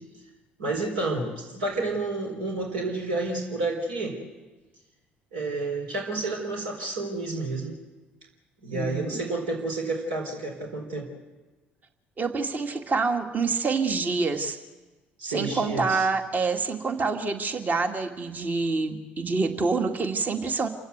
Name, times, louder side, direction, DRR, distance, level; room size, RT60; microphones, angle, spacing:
voice 1, 0.6-4.2 5.3-7.8 8.6-11.1 15.2-16.1, right 2 dB, 70° right, 1 dB, 4.2 m, -30 dB
voice 2, 8.7-9.2 12.2-14.6 15.2-20.7, right 4 dB, 30° right, 6 dB, 2.1 m, -27 dB
28.0 x 16.0 x 8.2 m, 1.2 s
figure-of-eight pair, 50°, 5 cm